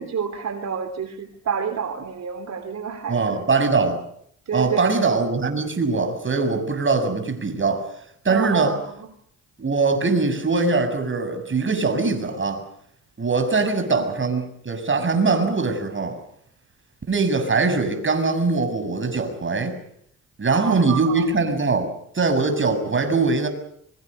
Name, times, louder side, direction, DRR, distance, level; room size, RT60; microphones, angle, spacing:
voice 1, 0.0-3.4 4.5-5.0 8.3-8.8 13.7-14.0 20.5-21.2, right 6 dB, 50° right, 3.1 m, -29 dB
voice 2, 3.1-4.0 4.5-7.8 8.3-8.8 9.6-12.6 13.2-16.2 17.1-19.8 20.4-23.5, right 4 dB, 35° right, 7.0 m, -22 dB
25.0 x 23.5 x 6.7 m
supercardioid pair, 55°, 34 cm